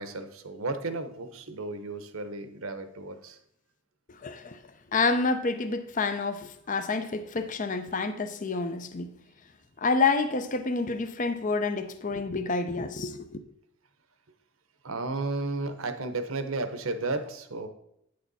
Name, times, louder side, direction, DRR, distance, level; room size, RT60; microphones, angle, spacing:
voice 1, 0.0-3.4 14.8-17.7, right 3 dB, 70° right, 1.0 m, -33 dB
voice 2, 4.2-4.6 4.9-9.1 9.8-13.4, left 4 dB, 35° left, 0.6 m, -28 dB
9.1 x 6.6 x 4.1 m
head